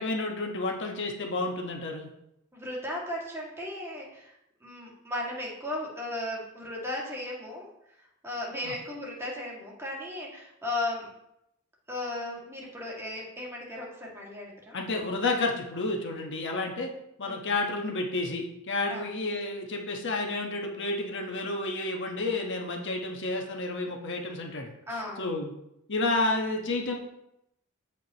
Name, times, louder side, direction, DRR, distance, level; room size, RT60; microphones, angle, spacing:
voice 1, 0.0-2.1 8.6-8.7 14.7-16.9 17.2-24.7 25.2-25.5 25.9-26.9, left 2 dB, 60° left, 1 dB, 1.3 m, -30 dB
voice 2, 2.5-4.3 4.6-7.7 8.2-11.1 11.9-14.8 17.2-17.4 18.9-19.0 24.9-25.3, left 1 dB, 10° right, -4 dB, 2.1 m, -36 dB
14.5 x 5.1 x 3.0 m, 0.82 s
head